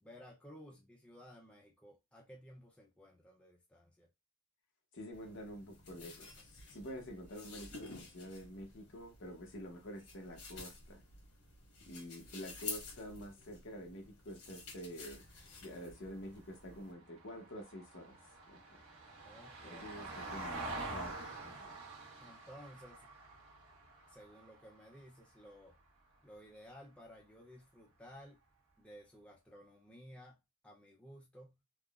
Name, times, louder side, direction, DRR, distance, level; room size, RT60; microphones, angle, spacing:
voice 1, 0.0-4.1 19.2-20.0 22.2-23.1 24.1-25.8 26.2-28.4 28.8-31.6, equal, 5° left, 0.4 m, -56 dB
voice 2, 4.9-11.0 11.9-15.3 15.6-18.2 18.5-18.6 19.6-20.6 20.9-21.1 21.4-21.8, equal, 55° left, 0.8 m, -48 dB
sound 1, 5.1-16.9, left 3 dB, 80° left, 1.4 m, -51 dB
Vehicle, 15.3-25.7 28.0-28.1, right 2 dB, 70° right, 0.9 m, -47 dB
3.6 x 2.0 x 2.3 m
head